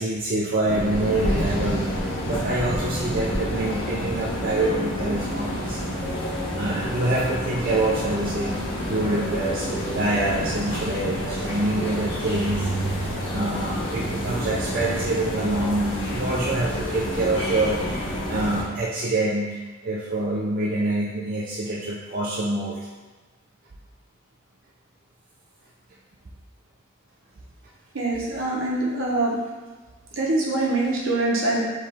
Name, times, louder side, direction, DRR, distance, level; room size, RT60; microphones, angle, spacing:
voice 1, 0.0-1.9 2.2-5.9 6.5-22.8, right 2 dB, 40° right, -5 dB, 0.5 m, -26 dB
sound 1, 0.6-18.6, equal, 60° left, 1.2 m, -28 dB
voice 2, 27.9-29.4 30.1-31.6, right 2 dB, 65° right, -4 dB, 1.1 m, -24 dB
4.7 x 3.1 x 3.5 m, 1.3 s
head